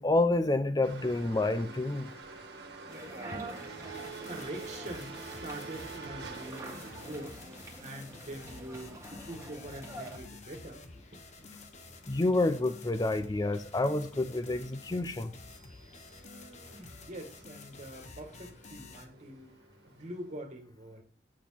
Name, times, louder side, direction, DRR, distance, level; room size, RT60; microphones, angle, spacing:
voice 1, 0.0-2.1 12.1-15.3, left 2 dB, 20° left, 0.5 m, -28 dB
sound 1, 0.8-20.3, right 4 dB, 65° right, 1.5 m, -49 dB
sound 2, 2.9-10.2, right 1 dB, 15° right, 1.9 m, -47 dB
voice 2, 3.1-9.0 9.3-10.8 11.4-11.6 16.1-19.5 19.9-21.0, right 1 dB, 40° right, 1.7 m, -44 dB
sound 3, 3.9-19.1, left 3 dB, 40° left, 0.9 m, -51 dB
8.4 x 4.4 x 5.7 m
head